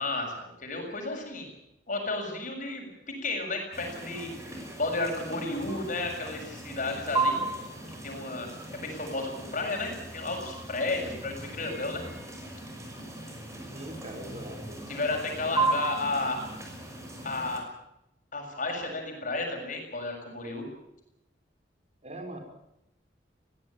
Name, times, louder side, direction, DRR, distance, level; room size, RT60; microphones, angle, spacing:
voice 1, 0.0-1.5 1.9-7.4 7.9-12.0 14.9-16.4 17.2-17.6 18.3-20.7, left 2 dB, 45° left, 1 dB, 7.0 m, -33 dB
sound 1, 3.7-17.6, right 3 dB, 15° right, 5.8 m, -36 dB
voice 2, 13.7-14.8 15.3-15.6 22.0-22.4, right 1 dB, 40° right, 5 dB, 4.7 m, -42 dB
22.0 x 17.5 x 8.9 m, 0.83 s
head